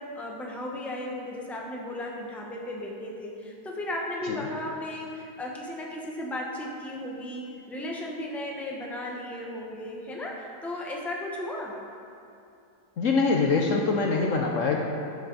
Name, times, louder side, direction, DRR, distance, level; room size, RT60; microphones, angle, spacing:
voice 1, 0.0-11.7, left 1 dB, ahead, -2 dB, 0.9 m, -35 dB
voice 2, 13.0-14.8, left 4 dB, 60° left, 0 dB, 1.0 m, -24 dB
12.5 x 7.6 x 4.0 m, 2.7 s
omnidirectional pair, 1.7 m